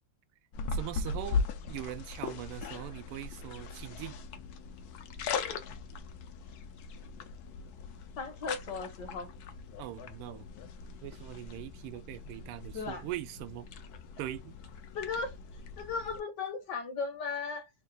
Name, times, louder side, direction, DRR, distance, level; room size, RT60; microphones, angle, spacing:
sound 1, 0.5-16.2, left 4 dB, 80° left, 0.8 m, -39 dB
voice 1, 0.7-1.4 1.7-4.2 9.8-10.5 11.0-13.7 14.2-14.6, right 14 dB, 85° right, 1.5 m, -41 dB
voice 2, 8.2-9.3 12.7-13.1 14.9-15.3 15.8-17.7, left 4 dB, 65° left, 1.2 m, -36 dB
3.7 x 2.3 x 3.9 m
omnidirectional pair, 2.4 m